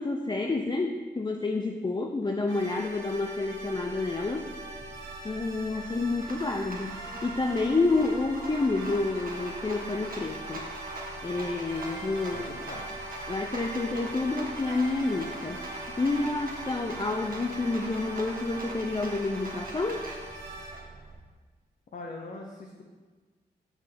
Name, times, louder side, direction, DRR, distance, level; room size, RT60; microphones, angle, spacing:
voice 1, 0.0-4.5 5.2-10.7 11.2-12.5 13.3-15.6 16.0-20.0, left 3 dB, 25° left, 3 dB, 0.5 m, -29 dB
sound 1, 2.5-20.7, right 2 dB, 85° right, 1.3 m, -42 dB
Rattle, 2.8-21.2, right 2 dB, 50° right, 1.4 m, -43 dB
voice 2, 12.3-12.9 21.9-22.8, left 3 dB, 45° left, 0 dB, 0.8 m, -41 dB
6.1 x 5.6 x 3.5 m, 1.4 s
supercardioid pair, 40°, 19 cm